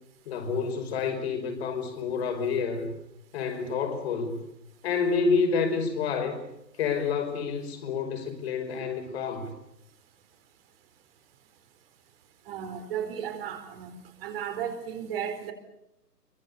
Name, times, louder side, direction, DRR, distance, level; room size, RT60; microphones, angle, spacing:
voice 1, 0.3-2.9 3.3-4.4 4.8-6.4 6.8-9.5, left 5 dB, 40° left, 6 dB, 5.5 m, -28 dB
voice 2, 12.5-15.5, right 8 dB, 35° right, 7 dB, 4.4 m, -34 dB
26.5 x 24.5 x 6.9 m, 0.85 s
figure-of-eight pair, 140°, 50 cm